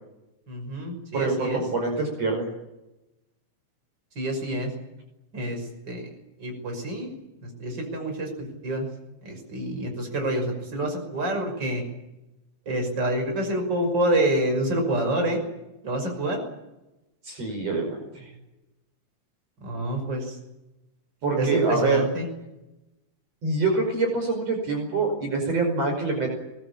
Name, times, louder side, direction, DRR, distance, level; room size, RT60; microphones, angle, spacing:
voice 1, 0.5-1.6 4.1-4.7 5.3-6.1 6.4-7.1 7.4-8.9 9.2-11.8 12.7-15.4 15.8-16.4 19.6-20.4 21.4-22.3, right 1 dB, 35° right, 4 dB, 6.5 m, -27 dB
voice 2, 1.1-2.5 17.2-18.3 21.2-22.0 23.4-26.3, right 3 dB, 55° right, 3 dB, 6.3 m, -25 dB
23.5 x 20.5 x 8.8 m, 0.95 s
omnidirectional pair, 3.6 m